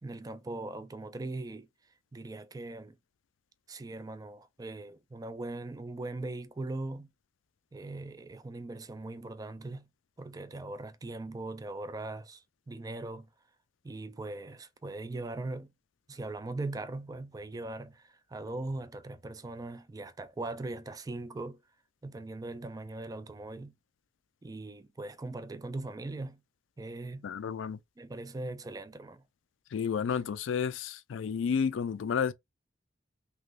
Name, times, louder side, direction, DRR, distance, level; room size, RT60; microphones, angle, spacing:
voice 1, 0.0-1.7 2.1-3.0 3.7-7.1 7.7-9.9 10.2-13.3 13.8-15.7 16.1-21.6 22.0-23.8 24.4-26.4 26.8-27.3 28.0-29.2, right 2 dB, 20° right, 0.4 m, -40 dB
voice 2, 27.2-27.8 29.7-32.3, left 6 dB, 90° left, 0.4 m, -31 dB
3.3 x 2.9 x 2.4 m
head